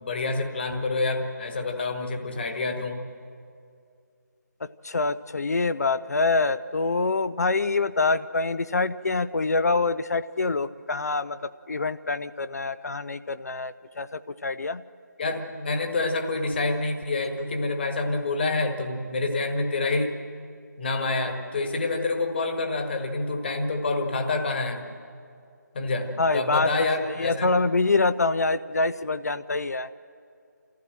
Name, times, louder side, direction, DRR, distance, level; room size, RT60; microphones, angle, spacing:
voice 1, 0.0-3.1 15.2-20.2 20.8-24.9 25.7-27.5, left 3 dB, 35° left, 5 dB, 1.6 m, -27 dB
voice 2, 4.6-14.8 26.2-29.9, left 3 dB, 55° left, 14 dB, 0.5 m, -25 dB
26.0 x 14.5 x 7.6 m, 2.4 s
figure-of-eight pair, 160°, 10 cm